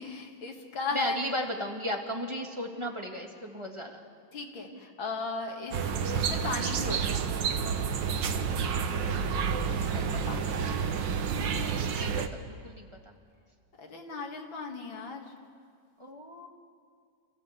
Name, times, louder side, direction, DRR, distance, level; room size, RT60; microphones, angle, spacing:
voice 1, 0.0-1.2 4.3-7.3 9.7-10.9 13.8-15.3, left 3 dB, 75° left, 2 dB, 2.8 m, -37 dB
voice 2, 0.9-4.0 4.7-4.8 9.1-9.5 11.9-12.8 16.0-16.5, equal, 15° right, 1 dB, 1.8 m, -35 dB
sound 1, 5.7-12.3, right 6 dB, 70° right, 1.7 m, -29 dB
28.5 x 15.0 x 8.1 m, 2.2 s
omnidirectional pair, 2.2 m